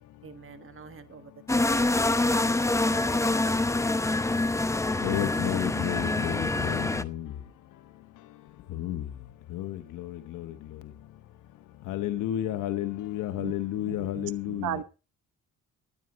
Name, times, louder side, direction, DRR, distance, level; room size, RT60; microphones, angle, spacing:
voice 1, 0.2-3.5, right 6 dB, 45° right, 1.6 m, -48 dB
sound 1, 1.5-7.0, left 2 dB, 10° left, 0.7 m, -26 dB
voice 2, 5.0-7.3 8.7-9.0 9.5-10.5 11.9-14.8, left 13 dB, 90° left, 1.2 m, -31 dB
voice 3, 13.9-14.8, right 12 dB, 90° right, 1.1 m, -35 dB
12.5 x 9.4 x 5.2 m
cardioid pair, 90°, 30 cm